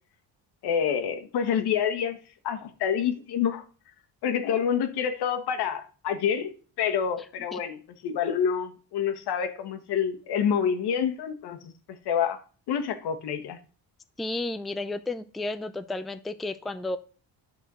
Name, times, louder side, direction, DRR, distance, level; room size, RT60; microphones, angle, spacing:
voice 1, 0.6-2.2 2.4-3.6 4.2-11.7 12.0-12.4 12.7-13.6, left 8 dB, 80° left, 1.4 m, -27 dB
voice 2, 14.2-17.0, left 2 dB, ahead, 0.4 m, -32 dB
9.9 x 4.6 x 6.1 m
cardioid pair, 120°, 39 cm